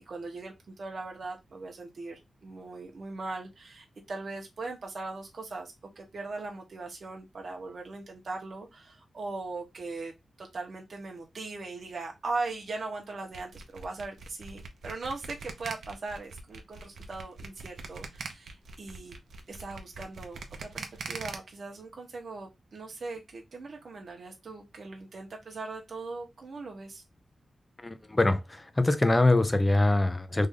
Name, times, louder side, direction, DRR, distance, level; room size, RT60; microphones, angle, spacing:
voice 1, 0.1-10.1 10.4-19.1 19.5-27.0, right 3 dB, 50° right, 0.9 m, -39 dB
sound 1, 13.3-21.4, right 4 dB, 80° right, 0.6 m, -42 dB
voice 2, 27.8-30.5, left 2 dB, 15° left, 0.4 m, -24 dB
3.2 x 2.5 x 3.6 m
wide cardioid pair, 155°, 0 cm